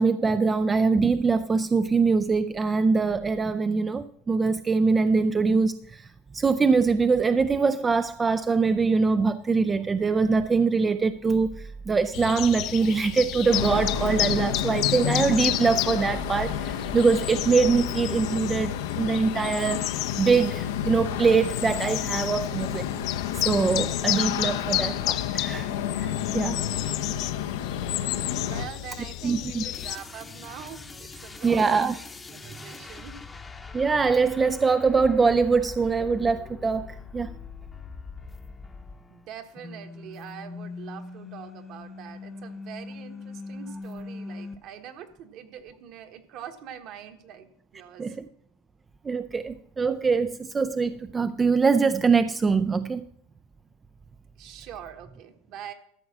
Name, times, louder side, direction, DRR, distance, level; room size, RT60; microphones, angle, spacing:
voice 1, 0.0-6.1 6.3-19.9 20.2-22.9 23.3-25.7 25.9-26.6 29.2-29.6 31.4-32.0 33.7-37.3 48.0-48.3 49.0-53.1, right 4 dB, 15° right, 0.3 m, -23 dB
sound 1, 12.1-30.0, left 14 dB, 50° left, 0.5 m, -32 dB
sound 2, 13.5-28.6, left 10 dB, 85° left, 0.8 m, -31 dB
voice 2, 28.4-31.8 32.3-33.2 39.1-48.2 54.4-55.7, right 9 dB, 50° right, 1.3 m, -43 dB
sound 3, 29.7-39.3 39.5-44.6, left 3 dB, 15° left, 0.8 m, -41 dB
13.0 x 4.7 x 7.3 m
supercardioid pair, 130°, 0 cm